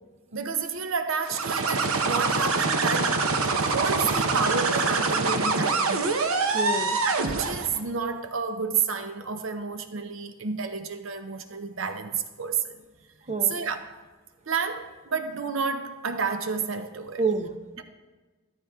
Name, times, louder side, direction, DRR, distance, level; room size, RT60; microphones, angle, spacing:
voice 1, 0.3-3.2 3.6-6.2 7.0-12.8 13.4-14.0 14.5-17.2 17.8-17.9, right 5 dB, 65° right, 0.8 m, -30 dB
sound 1, 1.2-7.8, right 3 dB, 90° right, 1.0 m, -25 dB
voice 2, 6.3-7.0 13.3-13.6 17.2-17.8, right 4 dB, 35° right, 0.9 m, -29 dB
14.0 x 13.5 x 3.6 m
head